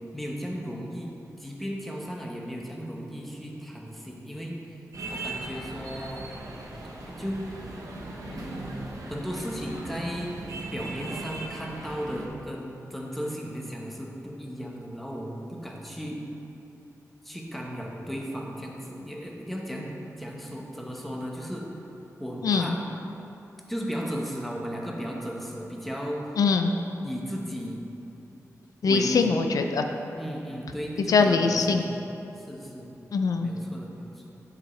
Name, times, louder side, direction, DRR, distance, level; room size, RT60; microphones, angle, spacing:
voice 1, 0.1-4.8 5.1-6.3 7.1-7.4 8.2-8.8 9.1-10.4 10.7-16.3 17.2-19.9 20.2-21.7 22.2-22.8 23.7-26.3 27.0-27.8 28.8-29.3 30.1-32.0 32.3-32.9 33.4-34.3, equal, ahead, -2 dB, 0.9 m, -35 dB
sound 1, 4.9-12.3, right 2 dB, 80° right, 1.1 m, -38 dB
voice 2, 22.4-22.7 26.4-26.7 28.8-29.9 31.1-31.8 33.1-33.5, left 4 dB, 90° left, 5 dB, 0.4 m, -22 dB
9.1 x 5.0 x 4.3 m, 3.0 s
wide cardioid pair, 135°, 6 cm